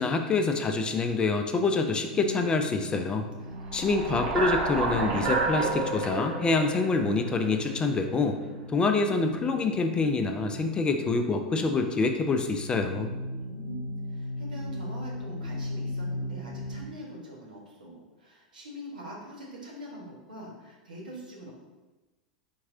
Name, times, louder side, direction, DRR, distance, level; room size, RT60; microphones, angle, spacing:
voice 1, 0.0-3.3 3.7-8.4 8.7-13.1, left 3 dB, 20° left, 5 dB, 0.4 m, -26 dB
sound 1, 2.1-16.9, left 1 dB, 25° right, 1.3 m, -39 dB
voice 2, 3.4-4.3 13.2-21.5, right 1 dB, 75° right, -3 dB, 1.3 m, -44 dB
sound 2, 3.6-7.9, right 3 dB, 50° right, 0.9 m, -30 dB
4.5 x 3.1 x 3.7 m, 1.1 s
figure-of-eight pair, 85°, 4 cm